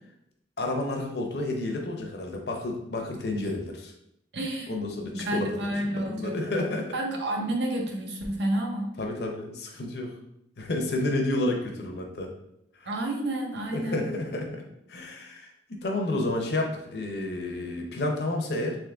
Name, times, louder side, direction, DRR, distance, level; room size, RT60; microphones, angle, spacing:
voice 1, 0.6-3.9 4.7-6.9 9.0-10.1 10.6-12.3 12.8-12.9 13.7-18.8, left 2 dB, 65° left, 2 dB, 0.7 m, -30 dB
voice 2, 4.3-4.7 5.1-6.4 6.9-8.9 12.9-14.1, right 1 dB, 75° right, 1 dB, 0.8 m, -30 dB
3.6 x 3.1 x 3.5 m, 0.79 s
head